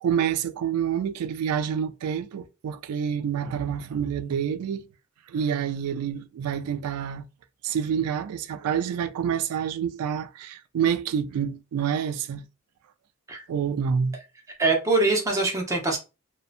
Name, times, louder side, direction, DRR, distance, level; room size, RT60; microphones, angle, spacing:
voice 1, 0.0-4.9 5.3-7.2 7.6-12.4 13.5-14.2, right 8 dB, 80° right, 0.3 m, -27 dB
voice 2, 14.6-16.0, right 3 dB, 15° right, 0.6 m, -23 dB
2.6 x 2.1 x 2.4 m
head